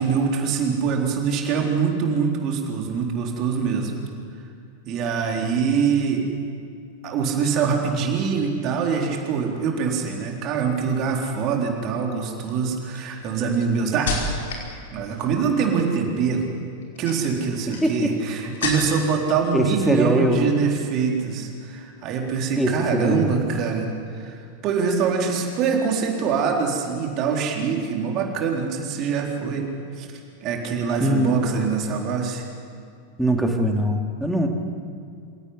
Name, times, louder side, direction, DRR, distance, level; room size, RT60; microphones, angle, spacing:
voice 1, 0.0-4.0 4.9-6.2 7.0-14.2 14.9-16.5 17.0-29.7 30.0-30.1 30.4-32.4, right 6 dB, 35° right, 1 dB, 4.0 m, -24 dB
sound 1, 11.2-11.6 12.3-14.7 15.0-15.5 16.7-19.2 19.5-20.1 20.4-20.7, left 3 dB, 60° left, 5.2 m, -32 dB
voice 2, 17.8-18.1 19.5-20.5 22.6-23.3 31.0-31.3 33.2-34.5, equal, ahead, 2 dB, 2.7 m, -22 dB
27.0 x 17.0 x 9.7 m, 2.4 s
figure-of-eight pair, 90°, 0 cm